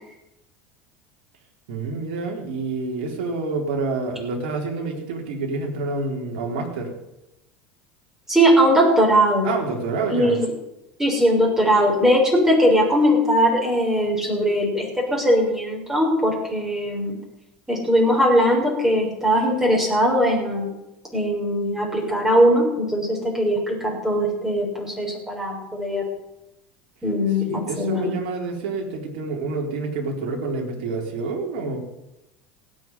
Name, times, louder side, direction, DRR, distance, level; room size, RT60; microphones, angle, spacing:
voice 1, 1.7-6.9 9.4-10.3 27.5-31.8, right 3 dB, 65° right, 1 dB, 4.3 m, -28 dB
voice 2, 8.3-9.5 10.1-10.5 11.0-17.2 17.7-20.7 21.1-26.0 27.0-28.1, equal, 10° right, -2 dB, 6.5 m, -20 dB
17.0 x 8.5 x 9.6 m, 0.91 s
hypercardioid pair, 75°, 5 cm